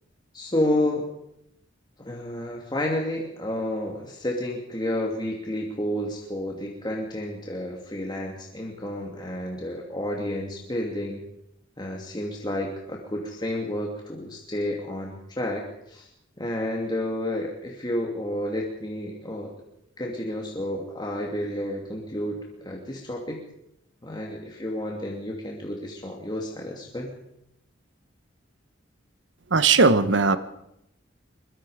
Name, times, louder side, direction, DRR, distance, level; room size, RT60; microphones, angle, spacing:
voice 1, 0.3-1.0 2.0-11.2 11.8-16.1 16.4-19.5 20.0-23.4 24.0-27.1, left 1 dB, 25° left, -1 dB, 2.7 m, -30 dB
voice 2, 29.5-30.4, right 4 dB, 65° right, 12 dB, 1.2 m, -18 dB
23.0 x 22.5 x 5.1 m, 0.80 s
head